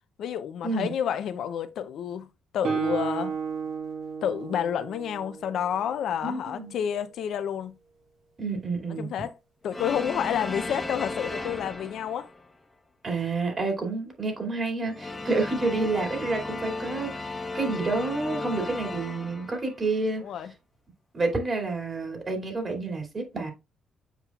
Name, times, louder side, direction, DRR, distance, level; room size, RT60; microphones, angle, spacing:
voice 1, 0.2-2.3 2.5-3.4 4.2-7.7 9.0-9.3 9.6-12.3 17.7-17.8 20.2-20.5, left 9 dB, 75° left, 0.6 m, -30 dB
Guitar, 2.6-6.3, right 6 dB, 75° right, 1.8 m, -33 dB
voice 2, 6.2-6.7 8.4-9.2 13.0-20.2 21.1-23.5, right 3 dB, 40° right, 2.6 m, -29 dB
sound 1, 9.7-12.5 14.8-20.0, left 3 dB, 15° left, 1.0 m, -35 dB
7.4 x 5.3 x 2.4 m
cardioid pair, 90°, 0 cm